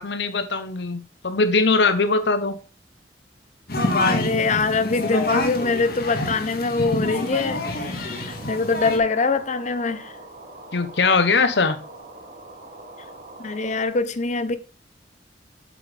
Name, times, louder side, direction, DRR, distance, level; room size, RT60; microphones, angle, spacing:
voice 1, 0.0-2.6 10.7-11.8, left 4 dB, 75° left, 0.8 m, -21 dB
sound 1, 3.7-9.0, left 2 dB, 60° left, 1.7 m, -26 dB
voice 2, 4.0-10.1 13.4-14.6, left 4 dB, 40° left, 0.7 m, -24 dB
sound 2, 7.2-13.9, right 2 dB, 45° right, 2.5 m, -43 dB
8.1 x 7.8 x 3.3 m
head